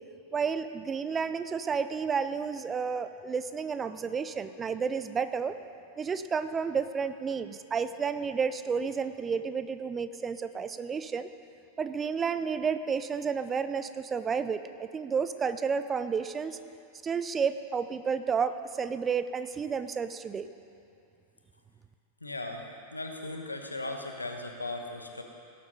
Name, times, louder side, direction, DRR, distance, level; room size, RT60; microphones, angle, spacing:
voice 1, 0.3-5.6 6.0-11.3 11.8-16.6 17.0-20.5, right 6 dB, 20° right, 11 dB, 0.5 m, -31 dB
voice 2, 22.2-25.2, left 2 dB, 80° left, 3 dB, 1.2 m, -37 dB
17.5 x 8.7 x 5.4 m, 2.5 s
figure-of-eight pair, 90°, 0 cm